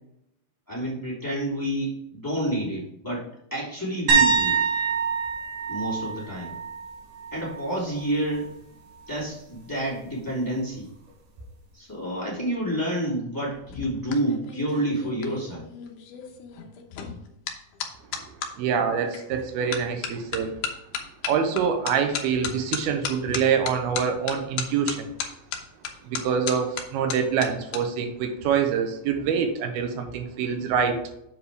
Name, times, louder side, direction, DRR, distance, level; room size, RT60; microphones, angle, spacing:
voice 1, 0.7-4.6 5.7-6.6 7.3-8.5 9.1-10.9 11.7-15.6, right 1 dB, 5° left, -7 dB, 2.3 m, -29 dB
sound 1, 4.1-7.8 8.2-8.5 11.4-11.5, right 5 dB, 60° right, 3.1 m, -25 dB
sound 2, 13.5-18.5 19.1-19.4 19.7-27.8 28.1-28.5, left 7 dB, 70° left, 2.2 m, -34 dB
voice 2, 18.6-20.6 21.2-25.1 26.0-31.0, right 7 dB, 90° right, 6 dB, 2.9 m, -25 dB
7.9 x 4.9 x 4.8 m, 0.80 s
omnidirectional pair, 4.3 m